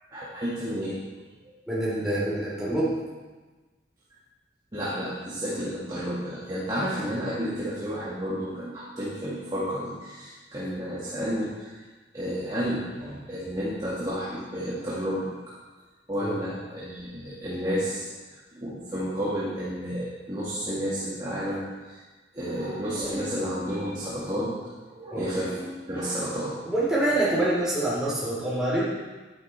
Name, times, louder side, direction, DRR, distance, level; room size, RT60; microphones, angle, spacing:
voice 1, 0.1-1.0 4.7-11.8 12.1-15.3 16.1-18.1 18.3-22.0 22.3-24.6 24.9-26.5, equal, 25° right, -9 dB, 1.9 m, -31 dB
voice 2, 1.7-3.0 16.2-16.4 25.1-25.2 26.6-28.8, right 1 dB, 5° right, -9 dB, 3.9 m, -26 dB
12.0 x 10.0 x 3.4 m, 1.3 s
head